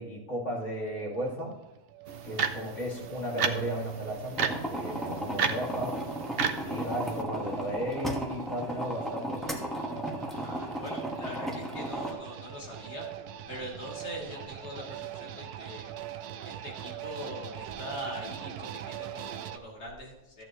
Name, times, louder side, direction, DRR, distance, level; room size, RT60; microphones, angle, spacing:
voice 1, 0.0-1.5 2.2-6.0 6.5-9.6, equal, 45° left, -3 dB, 2.9 m, -35 dB
sound 1, 0.6-19.6, right 11 dB, 75° right, 1.1 m, -43 dB
sound 2, 2.1-7.2, right 6 dB, 50° right, 0.7 m, -33 dB
sound 3, 4.3-12.1, right 1 dB, ahead, 1.3 m, -35 dB
voice 2, 10.2-13.0 13.5-15.9 16.4-20.4, equal, 75° left, -4 dB, 3.5 m, -42 dB
14.0 x 8.9 x 3.1 m, 1.0 s
omnidirectional pair, 1.7 m